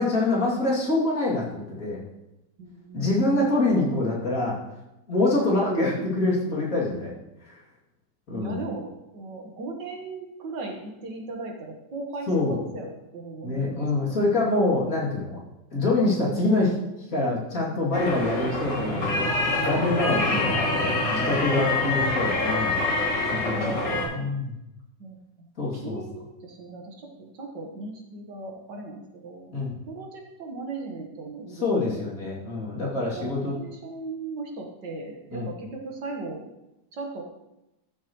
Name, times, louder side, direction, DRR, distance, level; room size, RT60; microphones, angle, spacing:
voice 1, 0.0-2.0 2.9-4.5 5.1-7.1 7.5-7.6 8.3-8.6 12.3-12.6 13.4-15.4 15.7-16.7 17.1-22.9 23.3-23.6 23.9-24.5 25.6-26.0 29.5-29.7 31.6-33.5 35.3-35.5, left 2 dB, 50° left, -5 dB, 3.1 m, -25 dB
voice 2, 2.6-3.6 5.3-5.5 8.4-14.3 17.7-17.9 23.5-24.2 25.0-25.5 25.7-29.5 29.9-32.0 33.1-36.5 36.9-37.2, right 3 dB, 75° right, 1 dB, 2.0 m, -38 dB
sound 1, 17.9-24.0, left 2 dB, 75° left, 2.6 m, -26 dB
13.0 x 7.5 x 3.1 m, 0.91 s
omnidirectional pair, 2.0 m